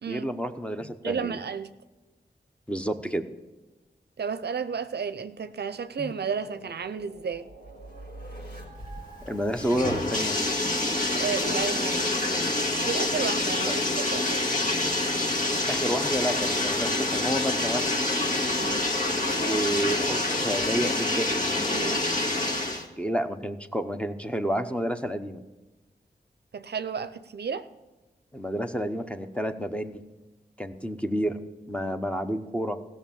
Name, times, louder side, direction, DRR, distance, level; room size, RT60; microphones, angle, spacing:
voice 1, 0.1-1.4 2.7-3.2 6.0-6.1 9.2-10.4 13.6-13.7 15.7-18.0 19.4-21.4 23.0-25.4 28.3-30.0 30.6-31.4 31.7-32.8, equal, 5° left, 0.8 m, -30 dB
voice 2, 1.0-1.7 4.2-7.5 11.2-12.4 12.8-14.4 18.6-18.9 21.7-22.1 26.5-27.7, right 6 dB, 70° right, 0.5 m, -32 dB
sound 1, 4.8-11.5, right 1 dB, 75° left, 4.4 m, -47 dB
Bathtub (filling or washing), 8.8-22.8, left 2 dB, 50° left, 2.0 m, -27 dB
16.0 x 6.3 x 7.2 m
cardioid pair, 55°, 17 cm